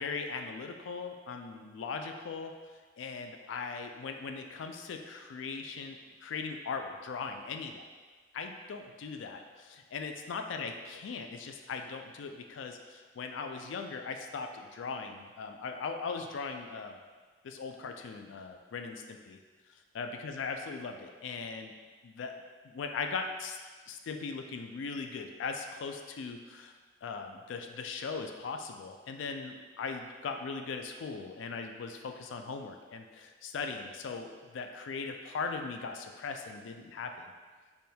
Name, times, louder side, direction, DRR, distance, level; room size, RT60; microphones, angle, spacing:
voice 1, 0.0-2.5 3.0-7.9 8.3-17.0 17.4-19.4 19.9-21.7 22.0-22.3 22.6-23.6 23.9-26.7 27.0-37.3, left 4 dB, 80° left, 5 dB, 0.3 m, -39 dB
4.3 x 3.4 x 2.3 m, 1.4 s
head